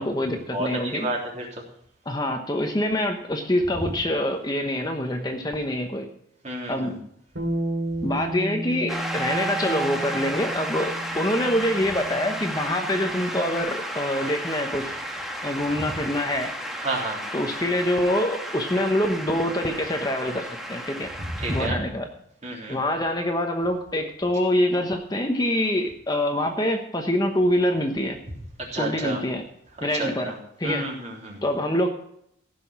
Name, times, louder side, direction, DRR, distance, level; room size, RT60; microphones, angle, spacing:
voice 1, 0.0-1.1 2.1-6.1 6.7-6.9 8.0-15.0 15.4-16.5 17.3-21.1 21.5-22.1 22.7-28.2 28.8-29.4 29.8-30.3 30.6-30.9 31.4-31.9, left 1 dB, 20° left, 4 dB, 1.0 m, -25 dB
voice 2, 0.5-1.6 6.4-7.0 16.8-17.2 21.4-21.8 22.4-22.8 28.6-29.2 30.0-30.3 30.6-31.4, right 2 dB, 35° right, -2 dB, 3.4 m, -30 dB
Bass guitar, 7.4-13.6, right 1 dB, 75° right, 2.6 m, -33 dB
Shout / Cheering / Applause, 8.9-21.7, right 1 dB, ahead, 1.3 m, -33 dB
15.5 x 6.2 x 5.8 m, 0.71 s
head